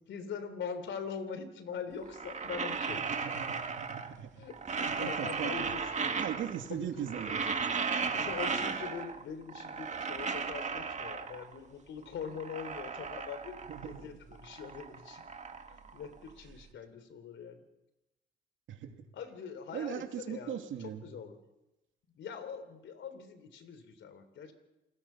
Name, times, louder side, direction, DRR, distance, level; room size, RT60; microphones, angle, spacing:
voice 1, 0.0-3.1 4.4-6.1 6.7-6.9 7.6-15.2 15.7-17.6 19.1-21.4 22.1-24.5, left 6 dB, 70° left, 11 dB, 3.4 m, -43 dB
sound 1, 2.0-4.2 4.5-6.7 7.0-9.2 9.5-11.6 12.0-14.0 14.3-16.5, right 5 dB, 35° right, 1.8 m, -36 dB
voice 2, 3.2-4.3 4.8-5.7 6.2-7.6 8.1-8.2 13.7-14.0 18.7-18.9 19.7-21.1, right 9 dB, 75° right, 5 dB, 2.7 m, -39 dB
28.0 x 20.0 x 5.8 m, 0.96 s
cardioid pair, 90°, 20 cm